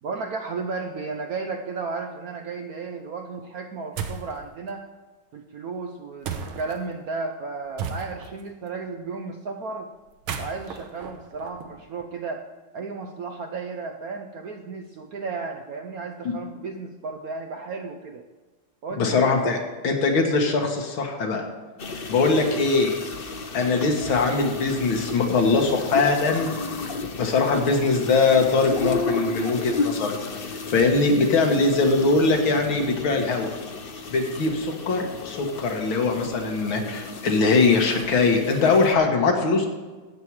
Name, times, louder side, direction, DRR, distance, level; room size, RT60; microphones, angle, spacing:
voice 1, 0.0-4.9 5.3-9.9 10.4-12.5 12.7-18.2 18.8-19.5, right 4 dB, 65° right, 5 dB, 0.9 m, -34 dB
sound 1, 4.0-4.3 6.2-6.8 7.8-8.4 10.1-12.0, right 6 dB, 90° right, 1.8 m, -34 dB
voice 2, 19.0-19.6 19.8-21.5 22.1-23.0 23.5-26.5 27.2-33.5 34.1-39.7, left 3 dB, 75° left, 3 dB, 2.3 m, -21 dB
sound 2, 21.8-38.9, left 3 dB, 60° left, 0.5 m, -33 dB
13.0 x 8.7 x 4.7 m, 1.3 s
omnidirectional pair, 2.2 m